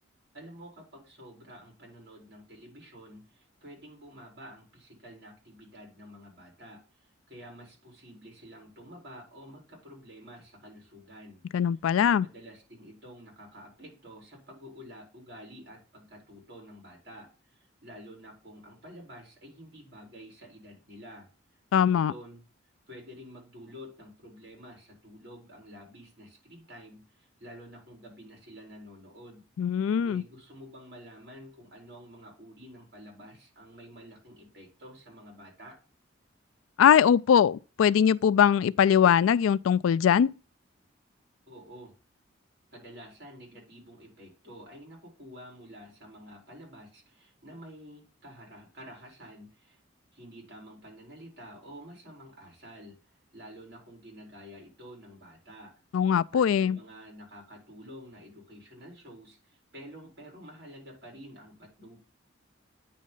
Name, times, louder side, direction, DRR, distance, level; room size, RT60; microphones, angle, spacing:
voice 1, 0.3-11.4 12.0-21.3 21.7-22.4 22.9-29.4 30.0-35.8 41.5-41.9 42.7-49.8 50.1-55.7 56.0-62.0, equal, 55° right, 4.2 m, -49 dB
voice 2, 11.5-12.3 21.7-22.1 29.6-30.2 36.8-40.3 55.9-56.8, left 8 dB, 90° left, 0.3 m, -21 dB
9.4 x 3.2 x 5.3 m
head